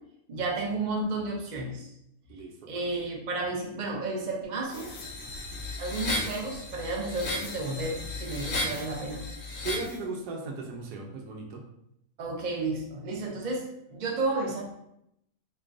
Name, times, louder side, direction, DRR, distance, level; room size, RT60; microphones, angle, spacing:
voice 1, 0.3-1.9 2.7-4.9 5.8-9.2 12.2-14.6, right 2 dB, 50° right, -1 dB, 0.5 m, -32 dB
voice 2, 2.3-2.8 9.6-11.7, right 3 dB, 85° right, 1 dB, 1.2 m, -37 dB
sound 1, 4.7-10.0, left 2 dB, 60° left, 0.9 m, -35 dB
3.7 x 3.0 x 2.5 m, 0.77 s
omnidirectional pair, 1.7 m